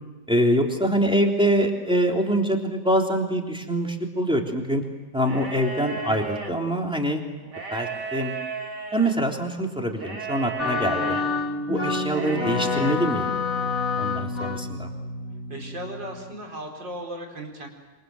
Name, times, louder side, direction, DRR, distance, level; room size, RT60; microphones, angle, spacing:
voice 1, 0.3-4.8 5.1-7.2 7.7-8.3 8.9-11.2 11.7-13.4 14.0-14.9, equal, 5° right, 1 dB, 3.4 m, -24 dB
sound 1, 5.2-6.5 7.4-9.1 10.0-11.2 12.1-13.0, right 5 dB, 70° right, 3.1 m, -34 dB
sound 2, 10.6-16.3, left 4 dB, 50° left, 2.3 m, -28 dB
voice 2, 15.5-17.7, right 1 dB, 85° right, 1 dB, 5.3 m, -36 dB
27.5 x 26.0 x 7.9 m, 1.2 s
omnidirectional pair, 1.9 m